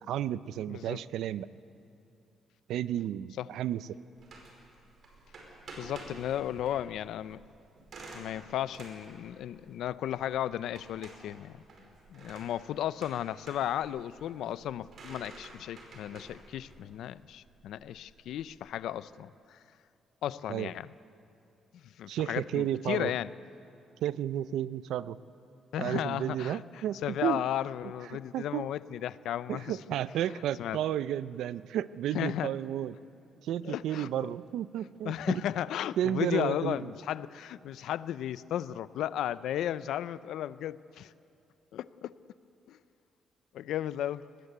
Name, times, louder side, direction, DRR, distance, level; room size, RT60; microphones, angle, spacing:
voice 1, 0.1-1.5 2.7-3.9 20.5-20.7 22.1-23.1 24.0-25.2 25.8-27.4 28.1-28.7 29.5-33.0 33.4-35.4 36.0-36.9, right 11 dB, 85° right, 16 dB, 0.5 m, -32 dB
voice 2, 0.7-1.0 3.4-3.5 5.8-7.4 8.1-11.6 12.1-19.6 20.2-20.9 21.7-23.3 25.7-26.6 27.0-29.8 30.6-30.8 32.1-32.5 33.6-34.3 35.0-41.1 41.7-42.2 42.7-42.8 43.5-44.2, left 11 dB, 80° left, 16 dB, 0.5 m, -34 dB
sound 1, 4.2-18.7, right 2 dB, 50° right, 4.9 m, -51 dB
23.0 x 19.5 x 8.1 m, 2.6 s
cardioid pair, 155°, 0 cm